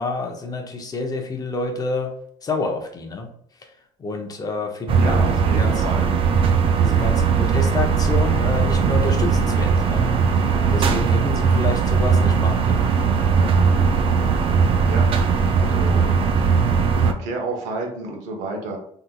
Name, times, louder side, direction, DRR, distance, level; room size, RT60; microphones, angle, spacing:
voice 1, 0.0-2.1 2.4-3.3 3.6-3.7 4.0-6.1 6.8-10.1 10.7-13.0, left 3 dB, 30° left, 3 dB, 0.6 m, -28 dB
sound 1, 4.9-17.1, right 5 dB, 45° right, 0.4 m, -19 dB
voice 2, 5.0-6.1 14.9-15.1 15.5-16.0 16.9-18.8, right 3 dB, 80° right, 2 dB, 0.9 m, -30 dB
3.7 x 2.8 x 2.2 m, 0.66 s
cardioid pair, 110°, 13 cm